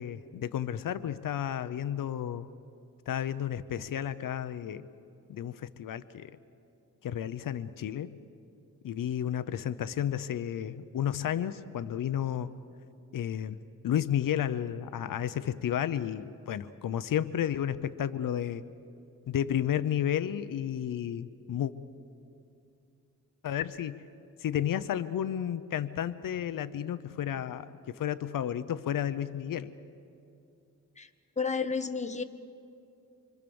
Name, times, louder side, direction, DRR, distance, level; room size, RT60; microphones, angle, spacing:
voice 1, 0.0-2.5 3.1-4.9 5.3-6.3 7.0-8.2 8.8-12.5 13.1-13.6 13.8-18.6 19.3-21.7 23.4-24.0 24.4-29.7, left 10 dB, 85° left, 13 dB, 0.8 m, -32 dB
voice 2, 31.4-32.2, left 5 dB, 20° left, 9 dB, 1.2 m, -31 dB
26.5 x 25.5 x 7.1 m, 2.6 s
cardioid pair, 100°, 32 cm